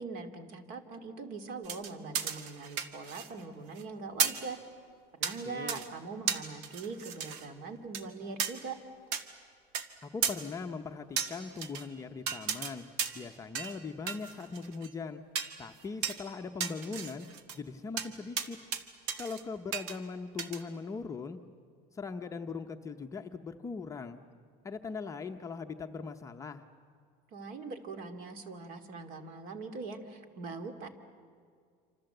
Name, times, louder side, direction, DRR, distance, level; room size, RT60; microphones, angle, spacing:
voice 1, 0.0-4.6 5.2-8.8 27.3-30.9, right 4 dB, 50° right, 8 dB, 2.4 m, -42 dB
sound 1, 1.6-3.4 3.7-3.8 4.2-4.5 5.2-5.4 5.7-5.9 6.3-7.4 7.9-8.0 8.4-8.5 9.1-9.2 9.7-9.8 10.2-10.4 11.2-11.8 12.3-12.7 13.0-13.3 13.5-13.8 14.1-14.9 15.3-15.6 16.0-16.2 16.6-17.6 18.0-18.1 18.4-18.8 19.1-19.4 19.7-20.0 20.4-20.6, right 7 dB, 90° right, 1.9 m, -34 dB
voice 2, 5.4-5.9 10.0-12.9 13.1-15.2 15.6-17.3 17.5-18.6 19.2-21.4 21.9-24.2 24.6-26.6, left 4 dB, 15° left, 4 dB, 0.7 m, -40 dB
27.0 x 26.5 x 7.9 m, 2.2 s
cardioid pair, 180°, 19 cm